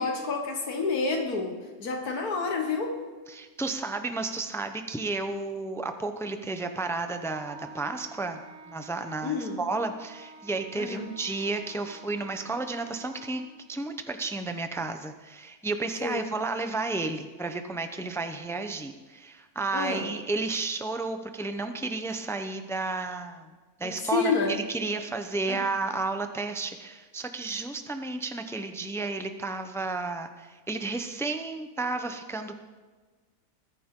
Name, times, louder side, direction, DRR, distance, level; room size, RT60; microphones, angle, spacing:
voice 1, 0.0-3.0 9.2-9.6 10.8-11.1 16.0-16.2 19.7-20.1 23.8-24.6 25.5-25.6, left 4 dB, 85° left, 2 dB, 1.9 m, -29 dB
voice 2, 3.3-8.4 8.7-13.4 13.7-23.5 23.8-32.5, right 3 dB, 5° left, 7 dB, 0.4 m, -32 dB
Wind instrument woodwind instrument, 7.2-13.6, right 2 dB, 50° right, 3.1 m, -49 dB
21.0 x 10.0 x 3.8 m, 1.3 s
omnidirectional pair, 1.6 m